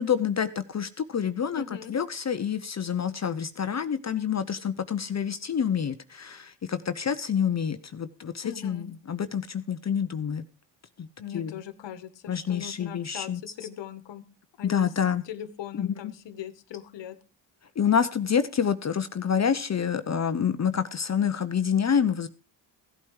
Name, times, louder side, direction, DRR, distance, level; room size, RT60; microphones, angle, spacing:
voice 1, 0.0-1.6 1.9-10.4 11.0-11.1 11.3-11.5 12.3-13.4 14.6-15.2 15.7-16.1 17.8-22.3, left 7 dB, 35° left, 11 dB, 0.8 m, -27 dB
voice 2, 1.6-1.9 8.4-8.9 11.2-14.2 14.6-14.9 15.2-17.2, left 10 dB, 65° left, 12 dB, 1.5 m, -40 dB
16.0 x 8.5 x 4.8 m, 0.36 s
supercardioid pair, 65°, 47 cm